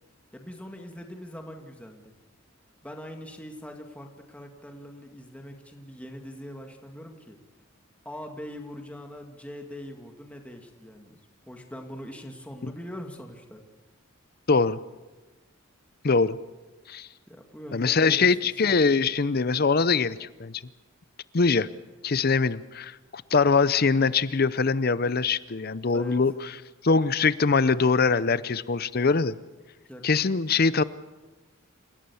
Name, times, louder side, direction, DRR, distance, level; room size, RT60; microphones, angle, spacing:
voice 1, 0.3-2.2 2.8-7.4 8.0-11.2 11.5-13.6 17.3-18.5 25.9-26.3 29.9-30.1, equal, 5° left, 3 dB, 2.1 m, -42 dB
voice 2, 14.5-14.8 16.0-16.4 16.9-17.1 17.7-20.6 21.3-21.7 22.0-26.3 26.8-29.4 30.0-30.8, left 4 dB, 45° left, 16 dB, 0.6 m, -23 dB
28.5 x 17.0 x 7.0 m, 1.2 s
head